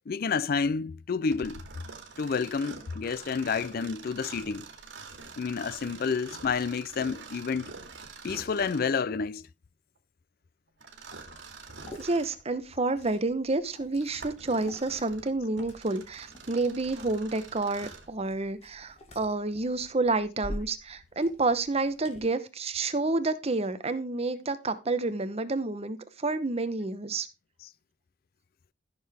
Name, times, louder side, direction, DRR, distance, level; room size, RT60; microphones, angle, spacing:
voice 1, 0.1-1.6 2.2-4.7 5.4-7.7 8.2-9.5 27.6-27.7, left 5 dB, 55° left, 0.4 m, -29 dB
Mechanisms, 1.3-9.0 10.8-12.4 13.0-13.1 13.8-18.1, right 4 dB, 80° right, 2.2 m, -46 dB
Liquid, 11.1-22.2, equal, 35° left, 2.0 m, -48 dB
voice 2, 12.0-27.3, right 3 dB, 35° right, 0.9 m, -29 dB
14.0 x 6.6 x 3.5 m
head